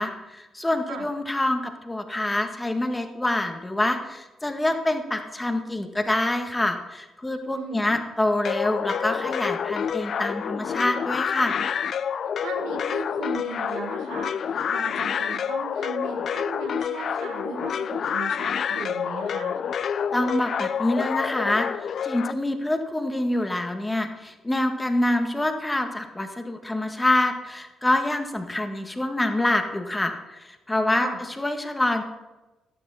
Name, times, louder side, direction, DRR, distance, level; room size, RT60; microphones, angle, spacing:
voice 1, 0.0-11.6 20.1-31.1 31.4-32.0, left 1 dB, 15° left, 5 dB, 1.7 m, -26 dB
voice 2, 7.5-8.0 12.4-19.6 31.0-31.2, right 5 dB, 75° right, 3 dB, 1.7 m, -37 dB
sound 1, 8.4-22.3, left 7 dB, 60° left, 0.4 m, -28 dB
12.0 x 11.5 x 4.3 m, 1.1 s
hypercardioid pair, 45°, 0 cm